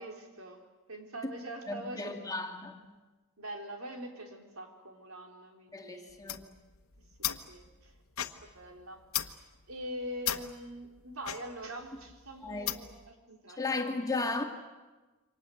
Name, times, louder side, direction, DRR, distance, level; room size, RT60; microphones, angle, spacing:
voice 1, 0.0-2.2 3.4-6.2 7.2-8.0 8.2-13.7, right 1 dB, 75° right, 3 dB, 4.0 m, -44 dB
voice 2, 1.7-2.9 5.7-6.5 12.4-12.7 13.6-14.4, left 3 dB, 15° left, 3 dB, 2.3 m, -35 dB
sound 1, 6.1-13.1, left 11 dB, 75° left, 1.3 m, -39 dB
28.0 x 25.0 x 7.9 m, 1.2 s
head